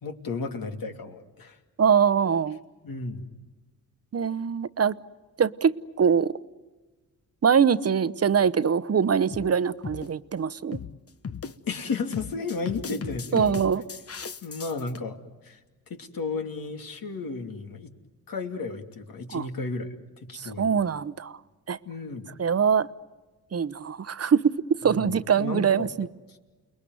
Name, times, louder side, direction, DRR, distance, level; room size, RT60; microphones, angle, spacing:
voice 1, 0.0-1.6 2.8-3.3 11.7-13.6 14.4-15.2 15.4-15.6 15.9-17.9 18.3-20.0 20.3-20.8 21.8-22.3 24.8-25.9 26.3-26.4, left 4 dB, 60° left, 2.8 m, -33 dB
voice 2, 1.8-2.6 4.1-4.9 5.4-6.3 7.4-10.8 13.3-13.8 19.3-19.4 20.3-21.3 21.7-21.8 22.4-22.9 23.5-26.1, right 7 dB, 40° right, 1.0 m, -23 dB
sound 1, 8.3-8.6 9.3-9.5 9.8-10.1 10.7-11.0 11.2-11.8 12.1-15.0, left 6 dB, 40° left, 1.2 m, -37 dB
29.5 x 21.0 x 9.6 m
cardioid pair, 60°, 38 cm